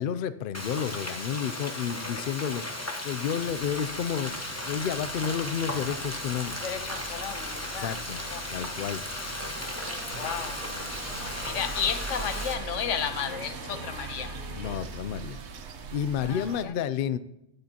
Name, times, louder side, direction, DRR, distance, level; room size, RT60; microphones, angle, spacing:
voice 1, 0.0-2.6 3.0-4.4 4.6-6.6 7.8-8.2 8.5-9.0 14.5-15.4 15.9-17.2, left 8 dB, 60° left, 0.6 m, -31 dB
Frying (food), 0.5-12.5, left 1 dB, 15° left, 0.9 m, -36 dB
sound 1, 3.4-16.7, right 4 dB, 65° right, 1.1 m, -41 dB
voice 2, 6.6-8.0 8.3-8.7 10.1-10.7 11.4-14.4 16.2-16.7, left 8 dB, 85° left, 1.1 m, -33 dB
sound 2, 9.8-14.8, left 2 dB, 40° left, 1.9 m, -46 dB
19.5 x 6.8 x 2.9 m
omnidirectional pair, 1.2 m